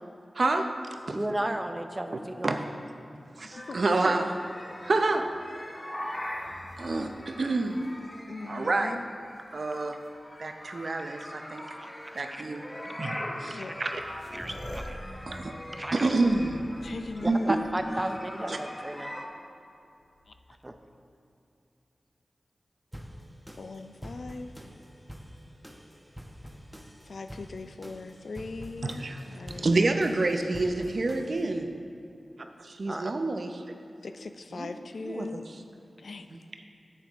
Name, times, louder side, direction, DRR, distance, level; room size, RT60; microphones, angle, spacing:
voice 1, 0.4-0.8 1.1-1.2 2.4-2.6 3.4-4.4 4.8-5.3 6.8-7.9 8.5-9.0 9.5-10.0 10.4-11.6 12.2-14.1 15.3-15.5 15.9-16.7 17.2-17.5 18.5-18.6 28.8-31.7 32.6-33.5 34.5-34.7 35.0-35.4 36.3-36.4, right 2 dB, 65° right, 6 dB, 0.6 m, -28 dB
voice 2, 1.1-2.5 11.8-12.4 13.6-13.9 14.3-15.0 15.7-16.1 17.2-19.1 20.6-20.7 32.9-33.1, right 1 dB, 25° right, 6 dB, 0.6 m, -34 dB
sound 1, 3.5-19.2, left 1 dB, 25° left, 1.0 m, -42 dB
sound 2, 4.8-8.7 9.4-10.1 11.2-11.3 12.0-12.2 13.3-13.4 13.6-18.1 20.0-20.7, left 1 dB, 45° left, 1.6 m, -47 dB
voice 3, 8.3-9.1 13.5-13.7 16.8-17.6 20.3-20.4 23.6-24.5 27.0-29.9 34.0-35.5 36.0-36.3, left 3 dB, 75° left, 8 dB, 0.4 m, -40 dB
sound 3, 22.9-31.6, equal, 5° right, 0.9 m, -47 dB
9.8 x 8.2 x 3.6 m, 2.6 s
wide cardioid pair, 60°, 0 cm